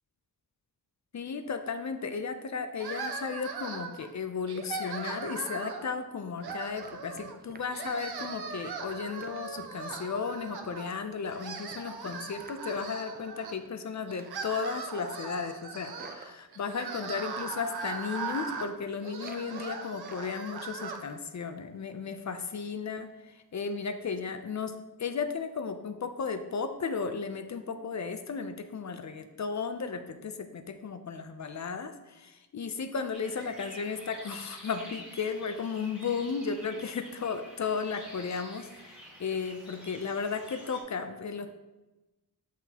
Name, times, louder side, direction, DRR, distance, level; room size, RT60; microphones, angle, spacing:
voice 1, 1.1-41.5, left 5 dB, 45° left, 8 dB, 0.5 m, -35 dB
sound 1, 2.8-4.1 4.5-5.9 6.4-7.4 7.7-10.9 11.3-13.5 14.1-21.0, right 5 dB, 70° right, 0.7 m, -39 dB
Run, 6.4-13.8 14.1-14.5 14.8-17.0 17.6-18.1 18.4-18.7 19.1-20.3 20.6-21.4 21.7-21.9 22.3-22.7 23.0-23.1 23.6-23.7 24.1-24.2, right 4 dB, 25° right, 0.4 m, -53 dB
sound 2, 33.1-40.8, equal, 5° right, 1.4 m, -48 dB
5.8 x 5.8 x 2.9 m, 1.1 s
wide cardioid pair, 105°, 41 cm